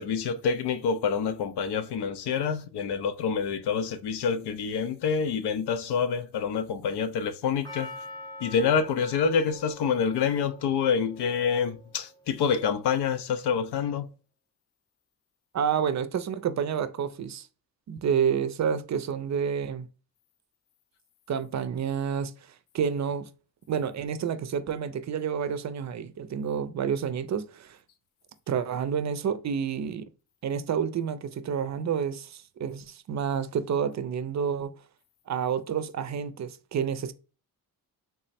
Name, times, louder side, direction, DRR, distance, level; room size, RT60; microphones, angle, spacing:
voice 1, 0.0-7.9 8.4-14.1, left 6 dB, 90° left, 0.5 m, -27 dB
Percussion, 7.6-12.0 12.6-12.7, left 1 dB, 10° left, 0.8 m, -45 dB
voice 2, 15.5-17.5 17.9-19.9 21.3-22.3 22.7-23.3 23.7-27.8 28.5-30.1 30.4-34.7 35.3-37.1, right 7 dB, 45° right, 0.4 m, -29 dB
3.6 x 2.0 x 4.1 m
cardioid pair, 105°, 39 cm